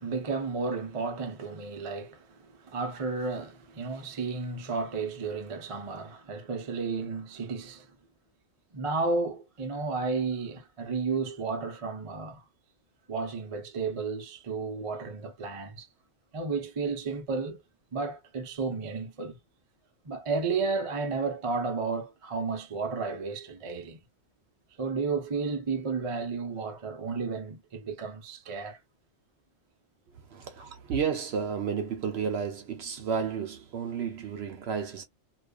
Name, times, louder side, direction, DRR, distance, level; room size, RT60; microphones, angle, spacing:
voice 1, 0.0-7.9 8.7-12.4 13.1-15.9 16.3-17.6 17.9-19.4 20.0-24.0 24.8-28.8 30.6-30.8, right 4 dB, 40° right, 0.5 m, -32 dB
voice 2, 30.1-35.0, right 6 dB, 60° right, 0.8 m, -32 dB
2.3 x 2.3 x 2.3 m
omnidirectional pair, 1.4 m